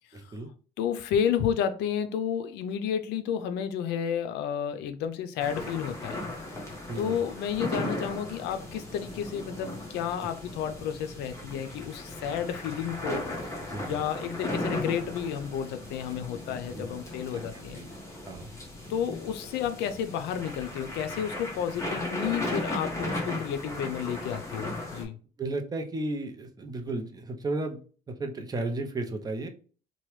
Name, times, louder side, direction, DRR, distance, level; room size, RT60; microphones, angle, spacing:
voice 1, 0.1-0.5 6.9-7.2 13.6-14.0 16.3-16.4 16.7-16.9 17.3-17.4 17.7-17.9 18.3-18.5 23.0-23.1 25.4-27.8 28.1-29.5, right 2 dB, 20° right, 0.6 m, -34 dB
voice 2, 0.8-6.2 7.0-13.2 13.5-13.6 13.9-17.8 18.9-25.2, left 8 dB, 85° left, 0.5 m, -31 dB
sound 1, 5.4-25.0, left 1 dB, 15° left, 1.0 m, -36 dB
2.9 x 2.2 x 3.0 m
cardioid pair, 110°, 17 cm